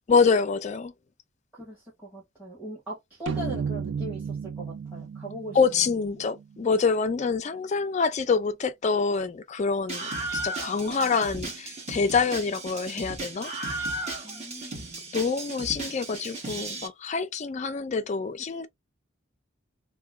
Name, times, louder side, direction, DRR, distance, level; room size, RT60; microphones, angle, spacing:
voice 1, 0.1-0.9 5.5-13.5 15.1-18.7, left 5 dB, 35° left, 0.3 m, -26 dB
voice 2, 1.5-5.6 10.8-11.1 14.2-14.9, right 1 dB, 5° right, 1.4 m, -40 dB
sound 1, 3.3-6.8, right 6 dB, 65° right, 0.4 m, -34 dB
Screaming, 9.9-16.9, right 2 dB, 35° right, 1.2 m, -35 dB
2.9 x 2.2 x 3.4 m
head